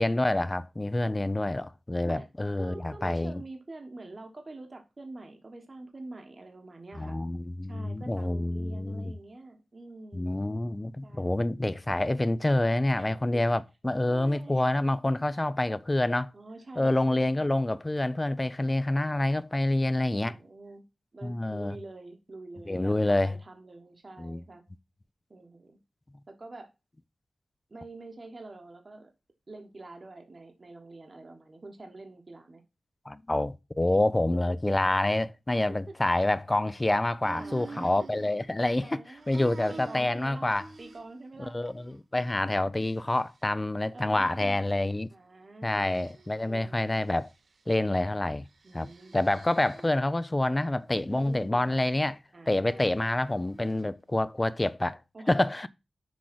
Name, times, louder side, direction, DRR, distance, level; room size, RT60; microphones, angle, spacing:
voice 1, 0.0-3.4 7.0-9.1 10.1-16.3 16.8-20.4 21.2-21.7 22.7-23.4 24.2-24.4 33.1-39.0 39.3-40.7 41.5-45.1 45.6-47.3 47.7-48.4 48.7-52.2 52.5-55.0 55.3-55.7, left 1 dB, 20° left, 0.5 m, -27 dB
voice 2, 2.6-7.2 7.7-10.4 11.0-11.4 12.9-13.4 14.0-14.6 16.3-17.5 20.2-20.8 21.1-24.6 25.3-25.8 26.3-26.7 27.7-29.1 29.5-32.6 34.3-34.5 35.9-36.0 37.3-37.9 38.8-39.4 39.7-40.5 40.8-41.5 43.9-44.6 45.1-45.9 46.4-46.9 48.6-49.2 51.1-51.8 52.3-52.9 55.1-55.3, right 2 dB, 40° right, 1.2 m, -46 dB
sound 1, 37.2-38.9 39.2-41.3 41.6-42.0 42.4-43.4 44.1-45.0 45.9-46.5 46.9-47.6 48.4-50.1 50.6-51.4 53.2-53.9, right 4 dB, 60° right, 0.9 m, -49 dB
6.3 x 4.9 x 5.9 m
wide cardioid pair, 125°, 0 cm